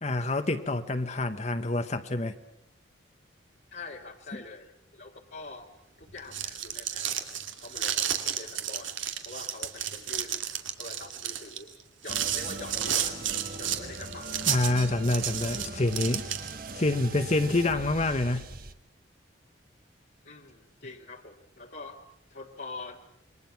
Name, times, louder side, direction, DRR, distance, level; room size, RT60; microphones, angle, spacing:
voice 1, 0.0-2.3 14.5-16.2 16.7-18.4, left 2 dB, 35° left, 8 dB, 1.0 m, -27 dB
voice 2, 3.7-5.7 6.0-7.2 7.6-9.0 9.3-10.5 10.8-11.7 12.0-13.2 13.6-14.4 20.2-22.0 22.3-23.0, left 3 dB, 55° left, -2 dB, 1.8 m, -44 dB
sound 1, 6.1-16.7, right 10 dB, 80° right, 2.5 m, -32 dB
sound 2, 12.1-18.7, right 2 dB, 50° right, 1.4 m, -41 dB
28.0 x 23.0 x 5.9 m, 0.82 s
head